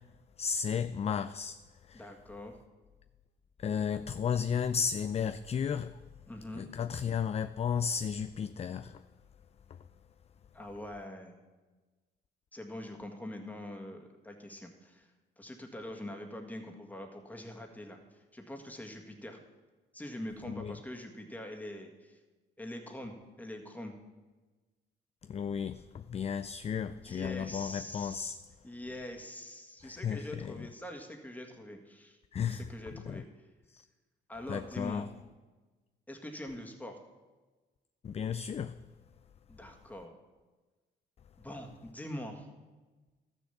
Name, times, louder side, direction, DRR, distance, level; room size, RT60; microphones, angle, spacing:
voice 1, 0.4-2.1 3.6-6.0 6.5-9.0 9.7-9.8 20.5-20.8 25.2-28.4 29.8-30.7 32.3-32.7 33.1-33.2 33.7-33.9 34.5-35.1 38.0-38.8, left 7 dB, 30° left, 0.3 m, -34 dB
voice 2, 1.9-2.6 6.3-6.7 10.5-11.4 12.5-15.1 15.4-18.0 18.3-19.4 19.9-22.2 22.6-23.9 26.9-28.4 28.6-32.2 32.4-33.3 34.3-35.1 36.1-37.0 39.5-40.1 41.4-42.5, left 1 dB, 10° left, 1.8 m, -44 dB
13.0 x 6.7 x 7.0 m
cardioid pair, 90°, 20 cm